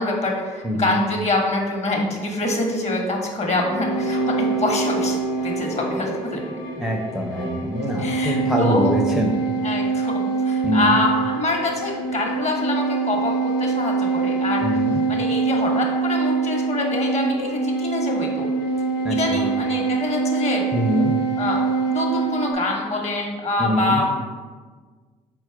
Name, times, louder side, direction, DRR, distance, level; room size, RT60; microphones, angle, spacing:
voice 1, 0.0-5.2 5.4-6.4 8.0-8.9 9.6-18.5 19.1-20.7 21.4-21.6 21.9-24.1, left 2 dB, 40° left, 1 dB, 1.1 m, -25 dB
sound 1, 3.5-22.5, right 4 dB, 90° left, 0.6 m, -24 dB
voice 2, 6.8-9.3 10.6-11.0 14.6-15.0 19.0-19.5 20.7-21.1 23.6-24.0, equal, ahead, 0 dB, 0.6 m, -24 dB
4.3 x 2.3 x 4.6 m, 1.5 s
hypercardioid pair, 50°, 18 cm